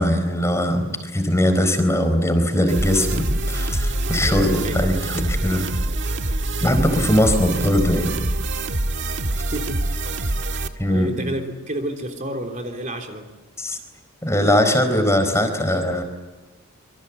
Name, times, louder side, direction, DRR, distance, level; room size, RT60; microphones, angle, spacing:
voice 1, 0.0-5.7 6.6-8.2 10.8-11.2 13.6-13.8 14.2-16.0, left 1 dB, 15° left, 6 dB, 4.3 m, -20 dB
sound 1, 2.7-10.7, right 1 dB, 55° right, 1.7 m, -25 dB
voice 2, 4.2-4.8 9.5-9.8 10.9-13.3, right 1 dB, 35° right, 3 dB, 3.4 m, -30 dB
27.0 x 25.0 x 8.4 m, 1.1 s
head